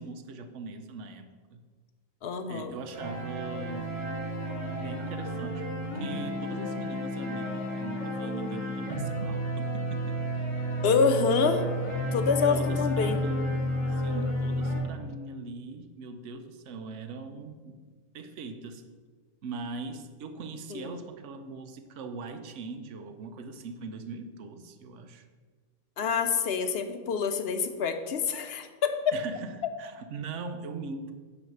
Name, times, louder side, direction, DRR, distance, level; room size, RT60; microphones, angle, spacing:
voice 1, 0.0-1.7 2.5-3.9 4.6-10.2 11.4-11.7 12.5-13.6 13.9-17.8 18.1-18.8 19.4-25.3 29.1-31.1, right 4 dB, 85° right, 8 dB, 1.0 m, -40 dB
voice 2, 2.2-2.7 10.8-11.6 12.1-13.2 20.7-21.0 26.0-29.1, left 5 dB, 65° left, 8 dB, 0.8 m, -27 dB
sound 1, 2.9-14.8, equal, 25° left, 2.1 m, -31 dB
9.2 x 3.2 x 6.5 m, 1.5 s
omnidirectional pair, 1.2 m